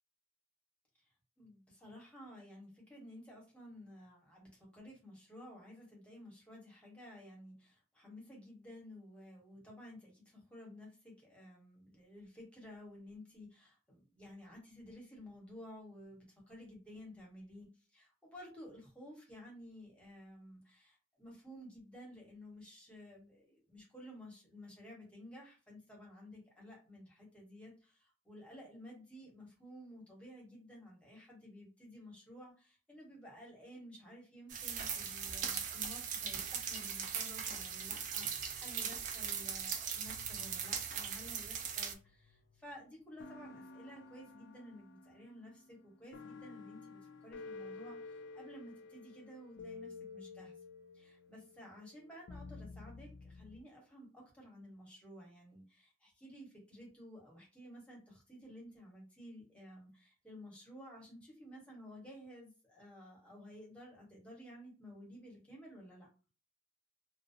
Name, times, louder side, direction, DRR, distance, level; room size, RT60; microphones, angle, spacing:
voice 1, 1.4-50.5 50.9-66.1, equal, 5° left, -3 dB, 1.1 m, -54 dB
sound 1, 34.5-41.9, right 7 dB, 45° right, 0.4 m, -39 dB
sound 2, 38.2-39.4 40.1-42.6 43.2-53.6, left 4 dB, 65° left, 0.3 m, -52 dB
2.5 x 2.0 x 2.6 m, 0.33 s
head